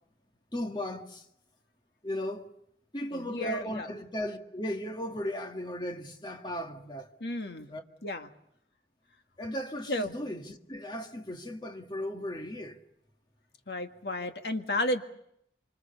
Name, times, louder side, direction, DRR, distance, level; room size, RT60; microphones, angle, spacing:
voice 1, 0.5-1.2 2.0-2.5 2.9-7.1 7.7-7.8 9.4-12.8, equal, 25° left, 1.7 m, -36 dB
voice 2, 3.1-3.9 7.2-7.7 8.0-8.3 9.9-10.1 13.7-15.0, left 1 dB, 65° left, 1.8 m, -32 dB
25.5 x 25.5 x 6.9 m
head